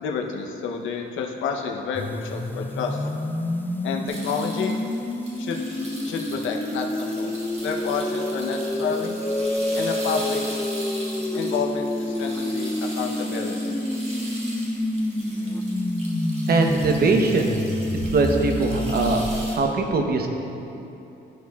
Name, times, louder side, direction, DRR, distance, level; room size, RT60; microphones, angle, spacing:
voice 1, 0.0-3.0 3.8-4.8 5.4-5.6 6.0-9.1 9.8-10.4 11.3-13.8, left 5 dB, 80° left, 2 dB, 0.7 m, -29 dB
sound 1, 1.9-19.6, left 1 dB, 10° left, 0.4 m, -28 dB
sound 2, 4.1-19.6, right 1 dB, 30° right, 1.5 m, -40 dB
sound 3, 7.6-11.7, left 1 dB, 15° right, 1.1 m, -32 dB
voice 2, 16.5-17.6 17.9-20.3, right 3 dB, 50° right, 3 dB, 0.8 m, -22 dB
13.5 x 4.6 x 2.3 m, 2.9 s
cardioid pair, 90°, 20 cm